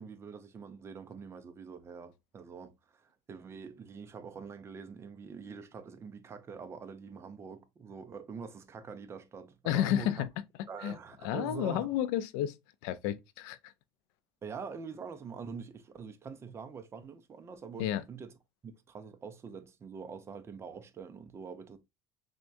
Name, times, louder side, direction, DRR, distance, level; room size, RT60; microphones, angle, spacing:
voice 1, 0.0-10.3 10.7-11.9 14.4-18.3 18.6-21.8, right 5 dB, 25° right, 0.6 m, -45 dB
voice 2, 9.6-10.3 10.8-11.0 11.2-12.6 12.8-13.7 17.8-18.0, left 12 dB, 90° left, 0.4 m, -31 dB
6.2 x 2.3 x 2.6 m
cardioid pair, 130°, 10 cm